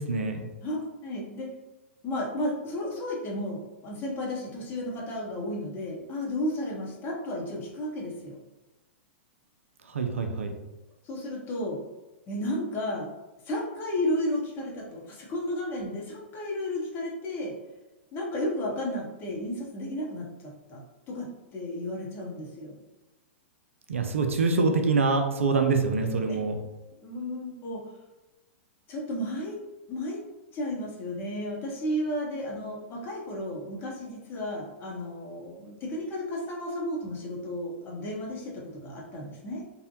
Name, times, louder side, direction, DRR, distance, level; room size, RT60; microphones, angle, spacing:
voice 1, 0.0-0.5 9.9-10.5 23.9-26.6, right 4 dB, 80° right, 5 dB, 0.4 m, -25 dB
voice 2, 0.6-1.5 2.0-8.4 11.0-11.8 12.3-13.1 13.5-17.5 18.1-20.8 21.1-22.8 26.3-26.4 27.0-27.8 28.9-29.6 29.9-30.2 30.5-39.6, left 1 dB, 30° left, -2 dB, 0.8 m, -33 dB
2.7 x 2.1 x 2.7 m, 1.1 s
hypercardioid pair, 110°, 7 cm